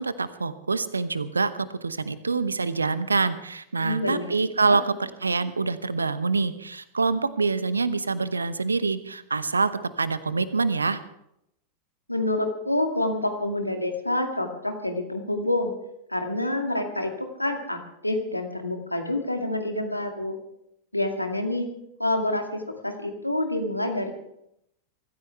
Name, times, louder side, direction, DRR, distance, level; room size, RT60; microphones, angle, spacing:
voice 1, 0.0-9.7 10.0-11.0, right 4 dB, 75° right, 15 dB, 0.9 m, -26 dB
voice 2, 3.8-4.2 4.6-4.8 12.1-15.7 16.1-20.4 20.9-21.7 22.0-24.1, left 1 dB, 85° left, 4 dB, 2.1 m, -27 dB
24.0 x 14.5 x 3.5 m, 0.79 s
figure-of-eight pair, 90°, 0 cm